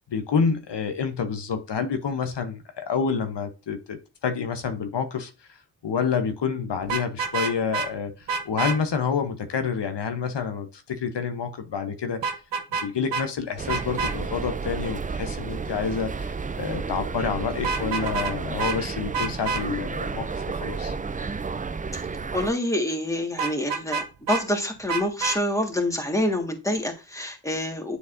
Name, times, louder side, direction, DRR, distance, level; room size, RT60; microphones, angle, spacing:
voice 1, 0.0-5.3 5.8-12.2 12.8-20.9, left 6 dB, 75° left, 0.9 m, -28 dB
Vehicle horn car horn honking, 6.8-7.9 8.3-8.8 12.2-12.9 13.1-13.2 13.7-14.1 17.6-18.3 18.6-18.8 19.1-19.6 23.4-24.4 24.9-25.4, right 5 dB, 85° right, 0.8 m, -27 dB
sound 1, 13.6-22.5, right 4 dB, 20° right, 0.3 m, -32 dB
voice 2, 22.3-28.0, left 1 dB, 5° left, 1.6 m, -27 dB
9.7 x 4.0 x 2.6 m
wide cardioid pair, 65°, 42 cm